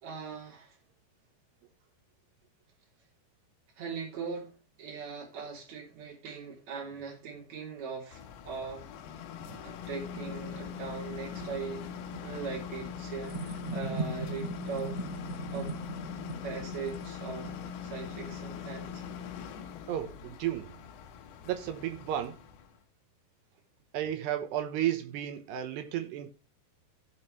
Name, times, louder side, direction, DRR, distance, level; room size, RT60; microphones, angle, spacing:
voice 1, 0.0-0.8 3.8-8.9 9.4-11.9 12.2-15.0 15.5-15.7 16.4-17.6 17.8-19.0, right 5 dB, 40° right, 4.2 m, -40 dB
sound 1, 8.1-22.8, left 8 dB, 75° left, 3.1 m, -42 dB
sound 2, 9.5-19.6, right 3 dB, 15° right, 2.0 m, -41 dB
voice 2, 19.9-20.8 21.5-22.4 23.9-26.3, right 11 dB, 75° right, 2.9 m, -33 dB
16.5 x 5.8 x 3.1 m
omnidirectional pair, 5.2 m